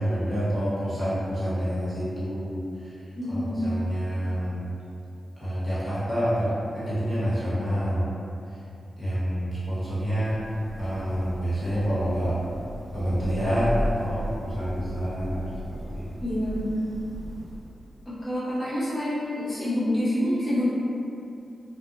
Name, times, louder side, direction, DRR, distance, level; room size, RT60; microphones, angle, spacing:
voice 1, 0.0-2.9 3.3-4.6 5.4-8.0 9.0-10.4 10.8-12.4 12.9-15.4 15.7-16.1, equal, 20° right, -12 dB, 1.4 m, -27 dB
voice 2, 3.1-3.6 16.2-16.9 18.0-20.7, left 1 dB, 35° left, -12 dB, 1.2 m, -27 dB
Thunder / Rain, 10.2-18.0, equal, 35° right, 0.3 m, -36 dB
2.5 x 2.4 x 2.5 m, 2.7 s
cardioid pair, 80°, 0 cm